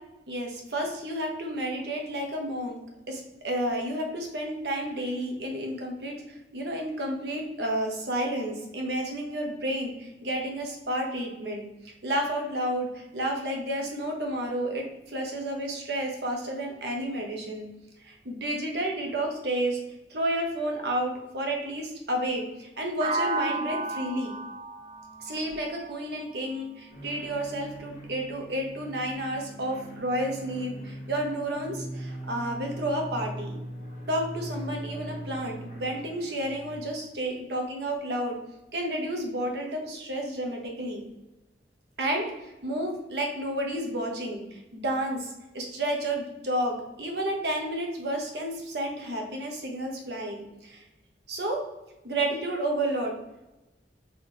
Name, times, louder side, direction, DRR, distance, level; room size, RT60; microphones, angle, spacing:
voice 1, 0.3-2.8 3.1-6.2 6.5-11.7 12.0-17.7 18.0-19.8 20.1-24.3 25.2-33.6 34.1-38.4 38.7-41.0 42.0-50.8 51.3-51.6 52.0-53.2, right 1 dB, 65° right, 1 dB, 0.9 m, -31 dB
sound 1, 23.0-26.9, right 3 dB, 30° right, 0.4 m, -34 dB
sound 2, 26.9-36.8, right 1 dB, 40° left, 1.2 m, -40 dB
3.9 x 3.1 x 3.4 m, 0.98 s
head